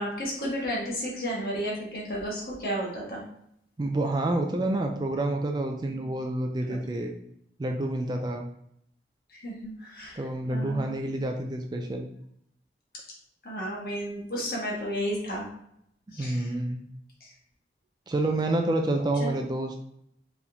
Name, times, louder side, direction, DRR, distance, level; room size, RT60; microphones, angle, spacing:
voice 1, 0.0-3.2 5.9-6.1 6.7-6.8 9.3-10.2 10.5-11.2 13.4-15.4 16.1-16.5 17.2-17.3 19.2-19.4, equal, 55° left, -4 dB, 1.5 m, -33 dB
voice 2, 3.8-7.1 7.6-8.5 10.2-12.1 16.2-16.8 18.1-19.7, right 2 dB, 25° right, 3 dB, 0.3 m, -28 dB
4.6 x 3.4 x 2.9 m, 0.73 s
head